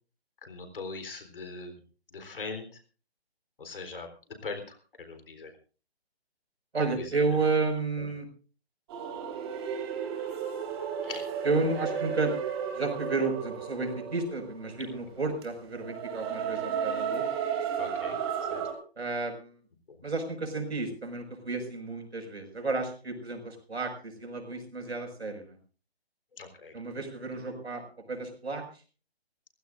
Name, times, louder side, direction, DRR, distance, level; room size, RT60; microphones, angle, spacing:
voice 1, 0.4-1.8 2.1-2.7 3.6-4.1 4.4-5.5 7.0-7.1 8.0-8.1 11.0-11.3 17.8-18.2 18.5-18.6 19.9-20.0 26.4-26.7, left 4 dB, 55° left, 7 dB, 3.9 m, -41 dB
voice 2, 6.7-8.3 11.4-12.3 12.7-17.3 19.0-19.5 20.0-25.6 26.7-27.8 28.1-28.6, right 3 dB, 80° right, 4 dB, 5.9 m, -31 dB
sound 1, 8.9-18.7, right 7 dB, 25° right, 3.0 m, -34 dB
25.0 x 16.0 x 2.6 m, 0.37 s
figure-of-eight pair, 155°, 32 cm